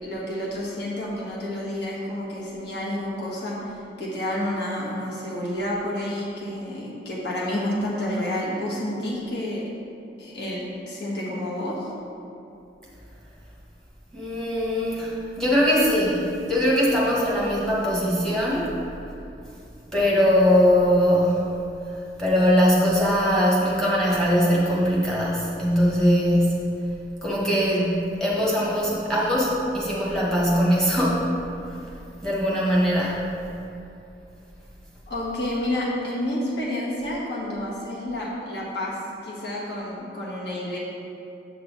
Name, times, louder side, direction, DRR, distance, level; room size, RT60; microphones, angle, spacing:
voice 1, 0.0-9.6 10.2-11.9 35.1-39.0 39.2-40.8, left 1 dB, 65° left, -6 dB, 1.5 m, -29 dB
voice 2, 14.1-18.7 19.9-21.5 22.2-26.6 27.2-31.3 32.2-33.3, equal, 5° left, -6 dB, 1.3 m, -21 dB
7.6 x 5.6 x 4.0 m, 2.8 s
head